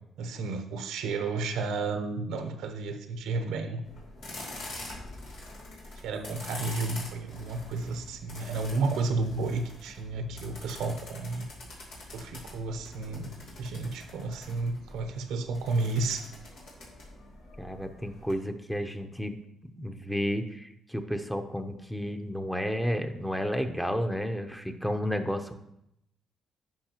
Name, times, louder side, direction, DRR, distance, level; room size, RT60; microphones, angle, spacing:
voice 1, 0.2-3.8 6.0-11.5 12.1-13.3 13.6-16.3, right 3 dB, 90° right, 7 dB, 0.8 m, -32 dB
sound 1, 3.8-18.3, left 1 dB, 90° left, 2.6 m, -45 dB
voice 2, 17.6-19.4 19.6-25.5, equal, 5° left, 6 dB, 0.7 m, -32 dB
10.5 x 5.3 x 3.0 m, 0.80 s
cardioid pair, 90°, 0 cm